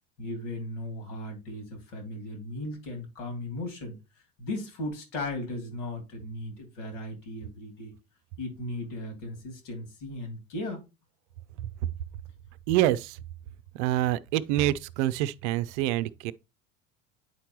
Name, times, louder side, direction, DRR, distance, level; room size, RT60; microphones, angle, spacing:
voice 1, 0.2-4.0 4.4-7.9 8.4-10.8, left 1 dB, 70° left, 2.7 m, -36 dB
voice 2, 12.7-13.2 13.8-16.3, right 14 dB, 60° right, 0.6 m, -26 dB
9.4 x 4.5 x 2.9 m
hypercardioid pair, 75°, 38 cm